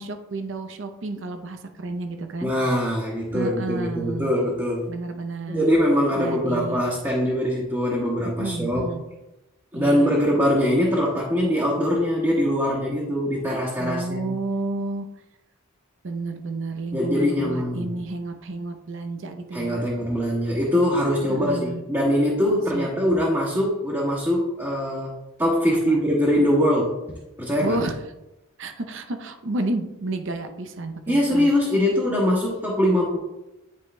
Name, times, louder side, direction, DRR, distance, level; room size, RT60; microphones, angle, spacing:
voice 1, 0.0-2.5 3.3-4.3 4.9-5.7 6.1-6.8 8.2-9.0 9.7-10.2 13.8-15.1 16.0-19.8 21.3-21.8 22.7-22.9 25.9-26.0 27.6-28.0 28.6-31.5, right 2 dB, 60° right, 6 dB, 0.6 m, -31 dB
voice 2, 2.4-4.9 5.5-8.9 9.7-14.3 16.9-18.0 19.5-25.1 25.4-27.0 27.4-27.8 31.1-33.2, equal, 15° right, -7 dB, 1.3 m, -22 dB
11.0 x 4.8 x 2.2 m, 0.94 s
head